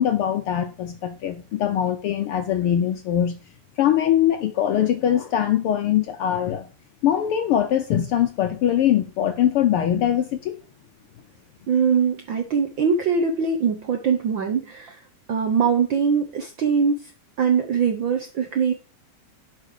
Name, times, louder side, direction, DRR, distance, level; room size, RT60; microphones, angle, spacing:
voice 1, 0.0-3.4 3.8-6.7 7.0-10.6, left 10 dB, 80° left, 1.2 m, -22 dB
voice 2, 11.7-15.0 15.3-16.9 17.4-18.7, right 6 dB, 70° right, 1.1 m, -22 dB
11.0 x 5.3 x 4.9 m
omnidirectional pair, 3.4 m